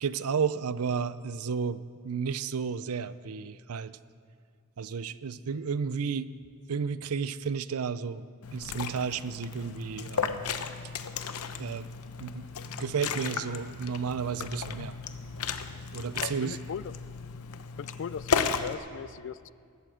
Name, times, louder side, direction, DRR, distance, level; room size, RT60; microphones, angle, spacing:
voice 1, 0.0-4.0 4.8-6.3 6.7-10.5 11.6-11.9 12.2-12.5 12.8-15.0 15.9-16.6, right 6 dB, 75° right, 16 dB, 0.5 m, -32 dB
Liquid, 8.4-18.7, left 6 dB, 85° left, 0.8 m, -35 dB
voice 2, 16.2-16.9 17.8-19.5, left 7 dB, 55° left, 18 dB, 0.3 m, -38 dB
18.5 x 14.5 x 5.0 m, 2.2 s
head